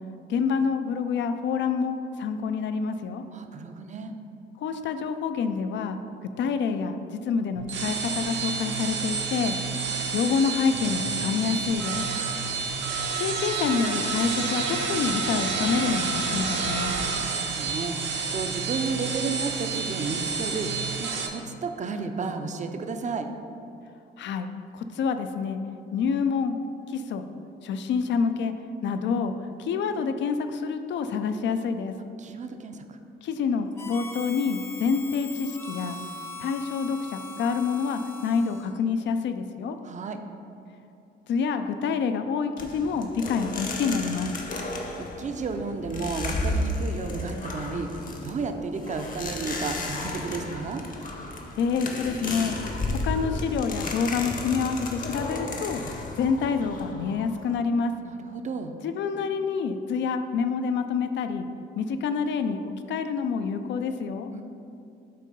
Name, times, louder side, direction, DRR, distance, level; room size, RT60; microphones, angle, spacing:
voice 1, 0.3-3.2 4.6-9.6 10.1-12.1 13.2-16.9 24.2-24.5 24.7-25.6 25.9-26.6 26.9-27.3 27.6-28.5 28.8-32.0 33.2-36.0 36.4-39.8 41.3-44.3 51.6-52.6 52.9-57.9 58.8-61.5 61.8-64.3, left 5 dB, 65° left, 9 dB, 0.5 m, -27 dB
voice 2, 3.3-4.1 17.2-20.7 21.0-23.3 32.2-33.0 39.8-40.2 45.0-47.9 48.2-50.8 58.0-58.7 64.3-64.4, right 4 dB, 40° right, 7 dB, 0.5 m, -32 dB
sound 1, 7.6-21.3, right 5 dB, 65° right, 0.8 m, -29 dB
Harmonica, 33.8-38.8, left 2 dB, 15° left, 0.7 m, -41 dB
sound 2, 42.6-57.6, left 2 dB, 45° left, 0.8 m, -33 dB
7.5 x 2.8 x 5.3 m, 2.7 s
cardioid pair, 90°, 20 cm